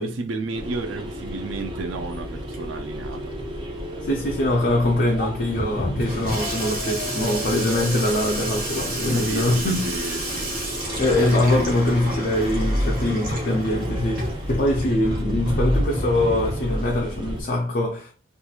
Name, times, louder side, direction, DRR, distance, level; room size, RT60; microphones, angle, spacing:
voice 1, 0.0-3.3 9.1-10.5, right 3 dB, 85° right, 0.4 m, -32 dB
sound 1, 0.5-17.4, equal, 25° right, 0.5 m, -31 dB
Water tap faucet / Sink (filling or washing), 1.5-17.5, equal, 50° right, 1.0 m, -32 dB
sound 2, 2.5-5.3 6.4-9.4, right 1 dB, 5° right, 1.2 m, -39 dB
voice 2, 4.0-9.9 11.0-18.1, left 1 dB, 45° left, 0.4 m, -23 dB
2.9 x 2.4 x 2.3 m
head